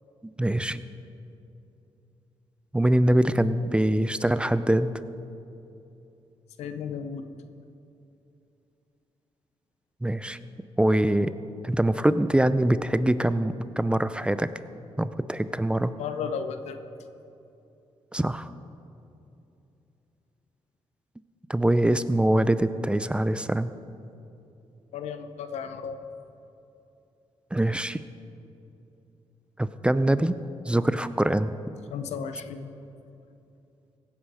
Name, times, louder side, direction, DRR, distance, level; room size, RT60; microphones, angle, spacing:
voice 1, 0.4-0.8 2.7-4.9 10.0-10.4 10.8-11.3 11.6-14.5 15.0-15.9 18.1-18.5 21.5-23.7 27.5-28.0 29.6-30.4 30.7-31.5, right 1 dB, 10° right, 13 dB, 0.5 m, -23 dB
voice 2, 6.6-7.3 16.0-16.8 24.9-26.0 31.9-32.7, left 6 dB, 90° left, 9 dB, 0.7 m, -34 dB
16.5 x 9.5 x 4.9 m, 2.8 s
cardioid pair, 75°, 11 cm